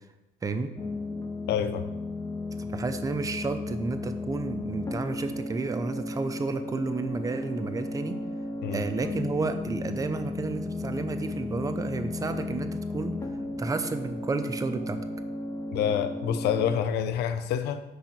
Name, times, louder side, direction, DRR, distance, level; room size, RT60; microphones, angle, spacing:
voice 1, 0.4-0.7 2.6-8.2 8.7-13.1 13.6-15.0, right 4 dB, 20° right, 8 dB, 0.7 m, -31 dB
sound 1, 0.8-16.8, left 2 dB, 20° left, 1.0 m, -34 dB
voice 2, 1.5-1.9 8.6-8.8 15.7-17.8, left 9 dB, 80° left, 10 dB, 0.8 m, -27 dB
10.5 x 3.9 x 5.9 m, 0.95 s
cardioid pair, 110°, 17 cm